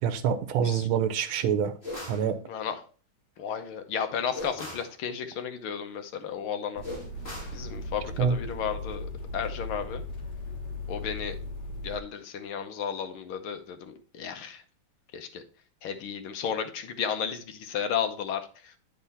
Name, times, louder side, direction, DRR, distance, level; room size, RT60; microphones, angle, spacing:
voice 1, 0.0-1.7 2.1-2.4 8.2-8.4, right 7 dB, 80° right, 1.6 m, -26 dB
sound 1, 1.8-2.3 4.3-4.9 6.8-7.6, left 2 dB, 30° left, 3.1 m, -38 dB
voice 2, 2.5-2.8 3.4-6.8 7.5-10.0 10.9-11.4 11.8-14.6 15.1-15.4 15.8-18.7, left 7 dB, 85° left, 1.8 m, -33 dB
sound 2, 6.8-12.0, left 2 dB, 55° left, 2.3 m, -37 dB
9.6 x 4.3 x 4.1 m
omnidirectional pair, 2.3 m